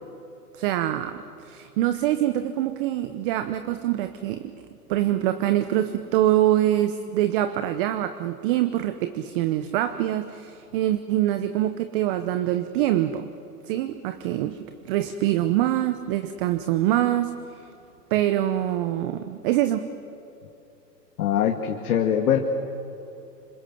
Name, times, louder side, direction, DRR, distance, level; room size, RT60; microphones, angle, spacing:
voice 1, 0.5-4.5 4.9-13.3 13.6-17.7 18.1-19.9, right 13 dB, 35° right, 10 dB, 0.9 m, -24 dB
voice 2, 21.2-22.4, left 9 dB, 60° left, 3 dB, 2.1 m, -22 dB
28.0 x 26.0 x 7.8 m, 2.8 s
hypercardioid pair, 135°, 49 cm